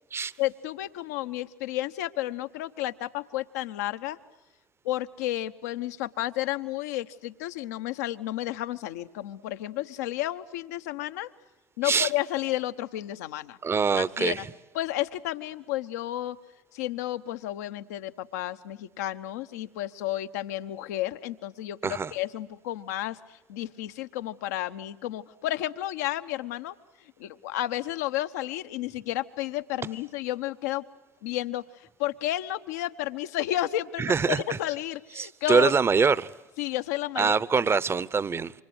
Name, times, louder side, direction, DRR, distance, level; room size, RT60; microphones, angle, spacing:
voice 1, 0.4-4.2 4.8-11.3 11.8-13.6 14.0-14.4 14.7-16.4 16.7-26.7 27.0-30.8 31.2-35.7 36.6-37.6, left 14 dB, 75° left, 1.0 m, -32 dB
voice 2, 13.6-14.4 21.8-22.1 34.0-34.6 35.2-36.3 37.2-38.5, right 5 dB, 25° right, 0.9 m, -24 dB
28.0 x 25.5 x 8.0 m
hypercardioid pair, 65°, 9 cm